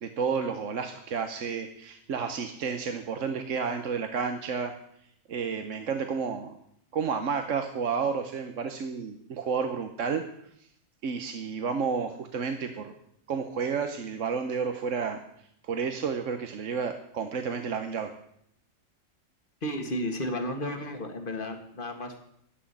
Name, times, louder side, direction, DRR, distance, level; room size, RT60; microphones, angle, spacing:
voice 1, 0.0-4.7 5.3-6.5 6.9-10.2 11.0-12.9 13.3-15.2 15.7-18.1, right 6 dB, 70° right, 6 dB, 1.3 m, -31 dB
voice 2, 19.6-22.2, left 1 dB, 40° left, 5 dB, 1.9 m, -33 dB
14.0 x 6.1 x 9.9 m, 0.73 s
omnidirectional pair, 1.3 m